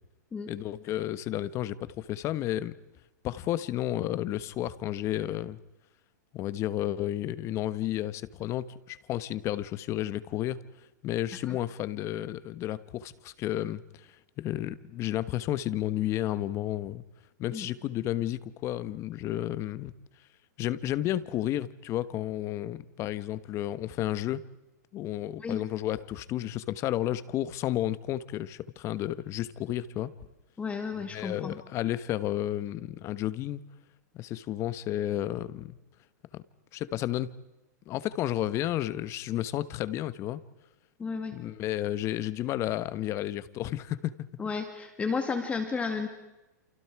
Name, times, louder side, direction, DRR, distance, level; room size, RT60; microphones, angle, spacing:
voice 1, 0.5-2.7 3.2-5.6 6.3-10.6 11.0-17.0 17.4-19.9 20.6-24.4 24.9-30.1 31.1-33.6 34.1-35.8 36.3-36.4 36.7-37.3 37.9-40.4 41.3-44.1, left 13 dB, 30° left, 16 dB, 1.1 m, -32 dB
voice 2, 30.6-31.6 41.0-41.3 44.4-46.1, left 5 dB, 15° left, 7 dB, 2.1 m, -32 dB
29.0 x 28.0 x 4.8 m, 0.98 s
hypercardioid pair, 145°, 10 cm